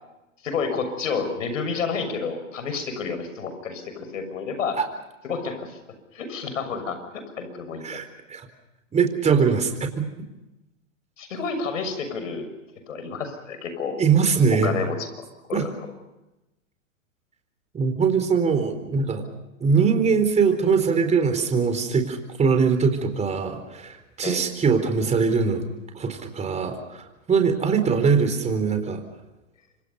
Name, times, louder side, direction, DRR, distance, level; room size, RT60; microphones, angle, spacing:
voice 1, 0.4-4.8 5.2-5.8 6.1-7.8 11.2-12.5 12.9-14.0 14.6-15.1 15.5-15.7 24.2-24.4, left 5 dB, 75° left, 9 dB, 6.7 m, -30 dB
voice 2, 7.8-8.5 8.9-10.1 14.0-14.8 15.5-15.6 17.7-19.2 19.6-25.6 25.9-29.0, right 5 dB, 15° right, 7 dB, 4.2 m, -22 dB
28.0 x 25.0 x 5.6 m, 0.98 s
hypercardioid pair, 120°, 38 cm